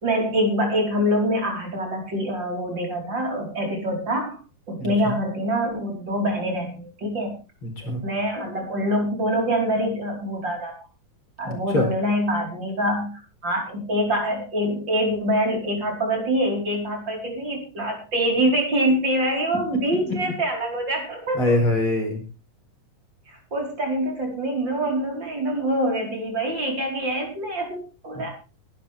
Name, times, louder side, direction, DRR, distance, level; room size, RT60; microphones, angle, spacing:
voice 1, 0.0-4.4 4.7-7.3 8.0-10.7 11.4-13.1 13.4-21.5 23.3-28.3, equal, 35° right, 1 dB, 5.4 m, -25 dB
voice 2, 4.8-5.1 7.6-8.0 11.4-11.9 19.7-20.2 21.3-22.2 28.2-28.3, left 1 dB, 40° left, 4 dB, 5.1 m, -24 dB
19.5 x 11.5 x 3.6 m, 0.32 s
omnidirectional pair, 3.7 m